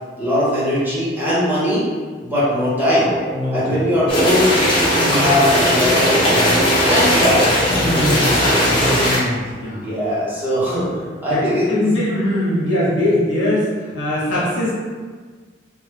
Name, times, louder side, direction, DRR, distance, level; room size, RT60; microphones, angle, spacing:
voice 1, 0.2-1.9 2.2-3.2 3.5-4.6 4.9-8.7 9.8-10.9 11.2-11.7, left 1 dB, 10° right, -10 dB, 1.1 m, -20 dB
Brass instrument, 2.8-8.4, right 1 dB, 45° right, 0.4 m, -32 dB
voice 2, 3.3-3.8 5.9-6.0 7.7-9.9 11.3-14.7, left 1 dB, 80° left, -7 dB, 1.1 m, -21 dB
sound 1, 4.1-9.2, equal, 30° left, 1.0 m, -17 dB
3.3 x 2.2 x 3.2 m, 1.5 s
head